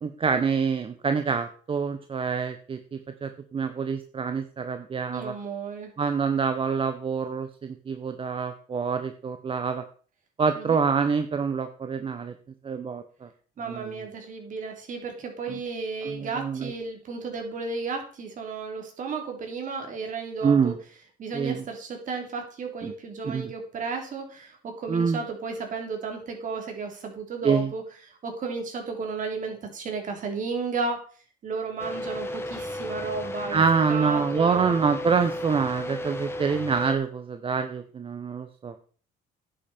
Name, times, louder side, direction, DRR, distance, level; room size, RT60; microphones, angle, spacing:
voice 1, 0.0-5.3 6.0-9.8 10.4-12.3 12.6-13.3 13.7-13.9 16.0-16.7 20.4-20.7 21.3-21.6 22.8-22.9 23.2-23.5 24.9-25.2 27.4-27.7 33.5-38.8, right 5 dB, 30° right, 8 dB, 0.9 m, -26 dB
voice 2, 5.1-5.9 10.6-10.8 13.6-20.7 21.2-31.0 31.4-33.6 33.9-34.8, right 4 dB, 50° right, 3 dB, 3.5 m, -33 dB
sound 1, 31.8-37.0, left 1 dB, 15° left, 1.5 m, -34 dB
10.5 x 9.0 x 4.4 m, 0.42 s
cardioid pair, 110°, 17 cm